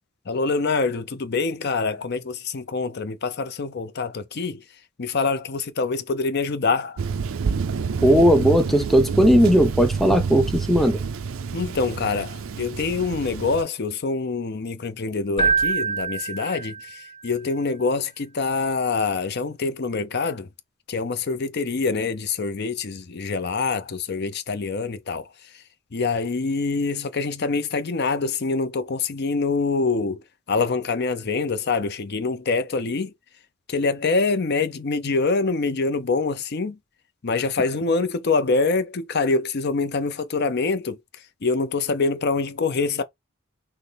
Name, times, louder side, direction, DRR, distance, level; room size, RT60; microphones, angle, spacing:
voice 1, 0.3-4.6 5.0-7.0 11.5-20.5 20.9-25.3 25.9-30.2 30.5-33.1 33.7-36.8 37.2-41.0 41.4-43.0, left 4 dB, 50° left, 0.6 m, -25 dB
Thunder, 7.0-13.6, right 5 dB, 75° right, 0.5 m, -28 dB
voice 2, 8.0-11.0, equal, ahead, 0.5 m, -17 dB
Keyboard (musical), 15.4-17.2, right 5 dB, 30° left, 2.1 m, -25 dB
6.1 x 2.1 x 3.4 m
head